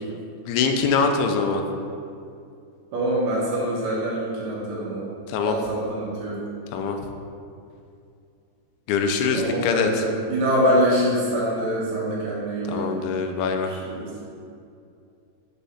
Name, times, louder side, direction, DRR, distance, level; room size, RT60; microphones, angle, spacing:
voice 1, 0.5-1.6 5.3-5.6 6.7-7.0 8.9-10.1 12.7-13.7, left 5 dB, 90° left, 5 dB, 3.0 m, -23 dB
voice 2, 2.9-5.1 5.4-6.4 9.3-12.8 13.9-14.0, equal, 70° right, -6 dB, 2.7 m, -24 dB
7.3 x 3.3 x 5.5 m, 2.5 s
omnidirectional pair, 5.2 m